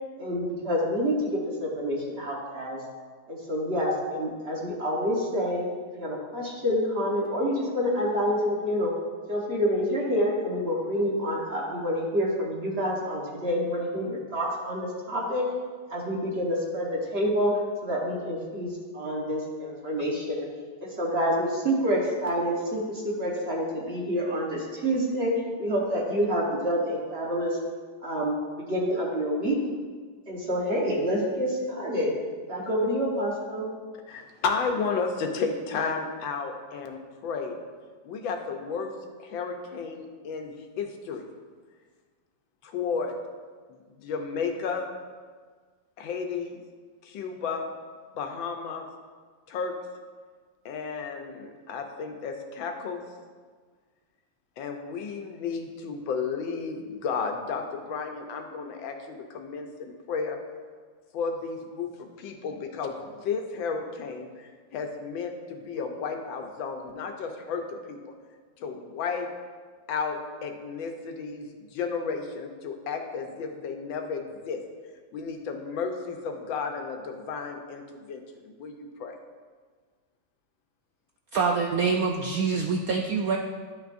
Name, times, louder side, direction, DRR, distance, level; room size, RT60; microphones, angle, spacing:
voice 1, 0.2-2.8 3.3-5.7 6.0-8.9 9.3-15.4 15.9-17.5 17.8-18.7 18.9-20.5 20.8-25.3 25.6-27.6 28.0-29.6 30.3-32.1 32.5-33.7, equal, 35° right, -3 dB, 1.3 m, -27 dB
voice 2, 34.1-37.6 38.0-38.9 39.2-41.2 42.6-43.2 43.7-44.9 46.0-46.6 47.0-47.7 48.1-48.8 49.5-49.7 50.6-53.0 54.6-60.4 61.1-68.0 68.6-69.3 69.9-71.5 71.7-74.6 75.1-79.1, left 5 dB, 80° left, 4 dB, 1.5 m, -33 dB
voice 3, 81.3-83.4, right 5 dB, 90° right, 2 dB, 0.7 m, -25 dB
11.0 x 5.9 x 2.6 m, 1.6 s
omnidirectional pair, 2.1 m